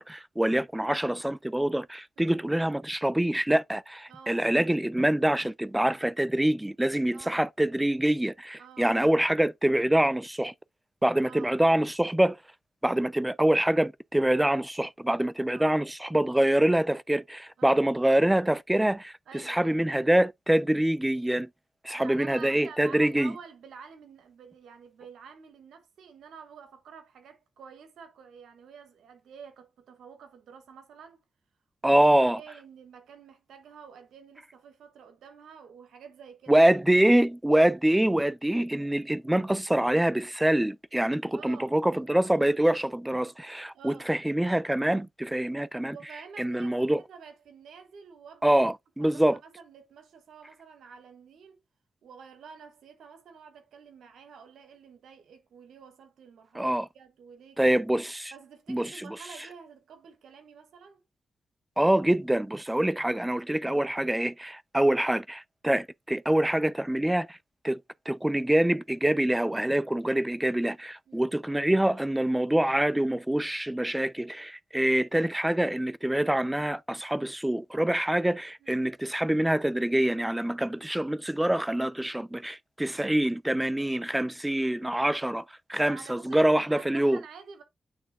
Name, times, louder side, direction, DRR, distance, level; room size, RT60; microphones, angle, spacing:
voice 1, 0.0-10.5 11.0-12.4 12.8-21.5 21.8-23.3 31.8-32.4 36.5-46.0 46.4-47.0 48.4-49.4 56.5-56.9 57.6-58.3 58.7-59.2 61.8-67.4 67.6-67.8 68.1-85.4 85.7-87.2, right 1 dB, 10° right, 0.4 m, -25 dB
voice 2, 2.2-2.5 4.1-4.4 7.1-7.4 8.6-8.9 11.3-11.5 15.5-15.7 17.6-17.9 19.3-19.8 21.9-31.2 31.8-32.0 32.4-36.5 41.3-41.8 43.7-44.1 45.9-48.6 49.0-51.6 52.0-57.7 58.3-61.0 71.1-71.3 78.6-78.9 85.8-87.6, right 6 dB, 90° right, 1.3 m, -49 dB
8.8 x 3.3 x 3.6 m
supercardioid pair, 45°, 0 cm